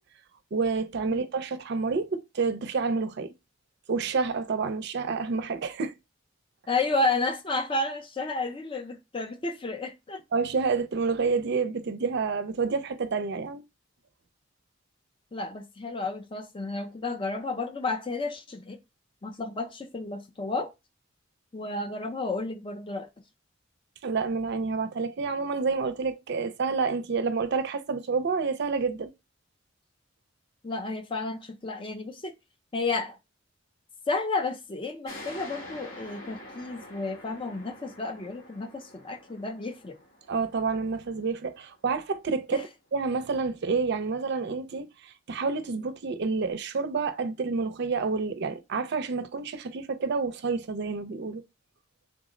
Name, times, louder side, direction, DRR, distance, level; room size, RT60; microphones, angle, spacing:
voice 1, 0.5-3.3 3.9-5.9 10.3-13.6 24.0-29.1 40.3-51.4, right 4 dB, 60° right, 0.4 m, -29 dB
voice 2, 6.7-10.2 15.3-18.8 19.2-20.7 21.5-23.1 30.6-32.3 32.7-33.2 34.1-39.9 42.5-42.6, left 3 dB, 25° left, 0.5 m, -31 dB
sound 1, 35.1-42.2, left 1 dB, 85° left, 1.4 m, -46 dB
3.6 x 2.0 x 3.7 m
head